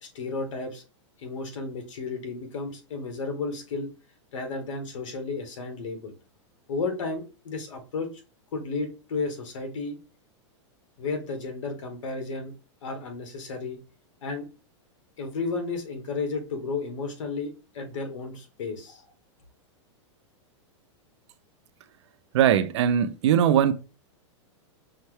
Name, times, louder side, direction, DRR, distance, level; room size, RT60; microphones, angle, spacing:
voice 1, 0.0-0.8 1.2-3.9 4.3-6.1 6.7-8.1 8.5-10.0 11.0-12.5 12.8-13.8 14.2-14.5 15.2-19.1, left 3 dB, 90° left, 1.2 m, -33 dB
voice 2, 22.3-23.7, right 9 dB, 65° right, 0.5 m, -20 dB
5.6 x 2.1 x 3.1 m
supercardioid pair, 160°, 16 cm